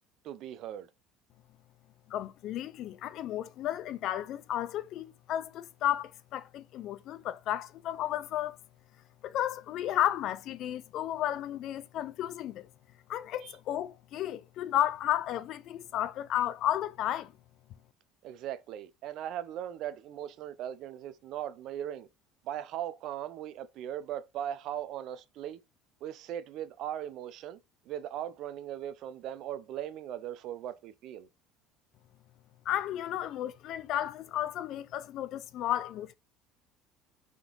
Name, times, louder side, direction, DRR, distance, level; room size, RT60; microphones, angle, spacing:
voice 1, 0.2-0.9 13.4-13.6 18.2-22.1 22.4-25.6 26.0-27.6 27.9-31.3, right 11 dB, 60° right, 0.5 m, -39 dB
voice 2, 2.1-8.6 9.2-12.7 13.1-17.3 32.7-36.1, left 12 dB, 60° left, 0.4 m, -33 dB
3.7 x 3.5 x 3.8 m
supercardioid pair, 110°, 0 cm